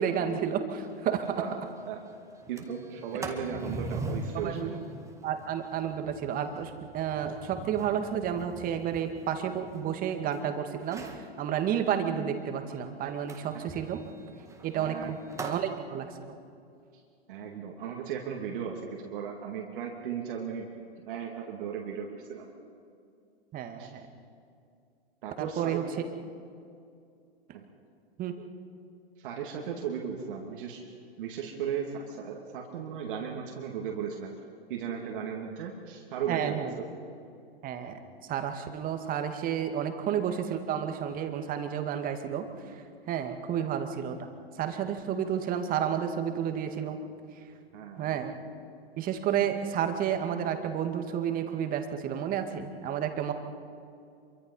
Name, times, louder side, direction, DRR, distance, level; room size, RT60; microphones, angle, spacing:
voice 1, 0.0-1.4 4.3-4.7 5.2-14.0 14.6-16.4 23.5-24.1 25.4-25.8 28.2-28.3 36.3-36.7 37.6-38.0 38.3-44.3 44.6-47.0 48.0-48.4 49.0-53.3, right 8 dB, 25° right, 6 dB, 2.2 m, -31 dB
Sliding door, 0.8-0.9 1.3-1.4 1.7-2.0 2.4-10.4 10.8-11.3 13.3-15.7, right 2 dB, 10° right, 2.2 m, -41 dB
voice 2, 2.5-4.8 14.7-15.1 16.9-17.0 17.3-20.8 21.0-22.5 23.8-23.9 25.2-25.8 27.5-27.7 29.2-30.8 31.2-34.3 34.7-36.6 47.7-48.2, right 7 dB, 55° right, 0 dB, 2.9 m, -36 dB
26.5 x 24.0 x 5.6 m, 2.4 s
figure-of-eight pair, 110°, 32 cm